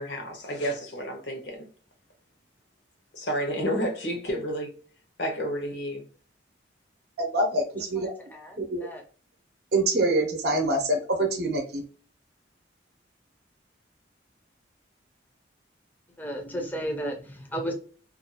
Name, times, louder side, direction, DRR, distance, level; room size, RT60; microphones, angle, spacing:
voice 1, 0.0-1.7 3.1-4.7 5.2-6.0, equal, 70° left, 0.9 m, -30 dB
voice 2, 7.2-8.1 8.6-8.9 9.7-11.9, right 2 dB, 55° right, 0.7 m, -25 dB
voice 3, 8.0-9.0 16.2-17.7, equal, 10° left, 0.5 m, -34 dB
2.6 x 2.3 x 2.7 m
head